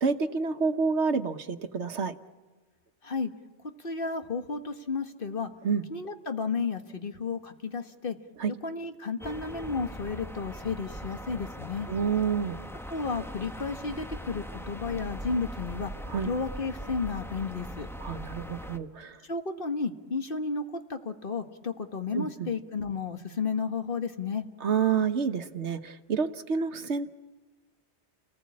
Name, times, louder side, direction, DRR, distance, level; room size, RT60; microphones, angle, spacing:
voice 1, 0.0-2.1 5.6-5.8 8.4-8.5 11.9-12.6 16.1-16.3 18.0-19.2 22.1-22.3 24.6-27.1, right 5 dB, 85° right, 9 dB, 1.4 m, -28 dB
voice 2, 3.8-5.5 5.9-8.2 8.6-11.9 12.9-15.9 16.2-17.9 19.2-24.4, left 4 dB, 55° left, 7 dB, 1.7 m, -32 dB
sound 1, 9.2-18.8, equal, ahead, 0.9 m, -40 dB
29.5 x 19.5 x 8.6 m, 1.3 s
omnidirectional pair, 1.1 m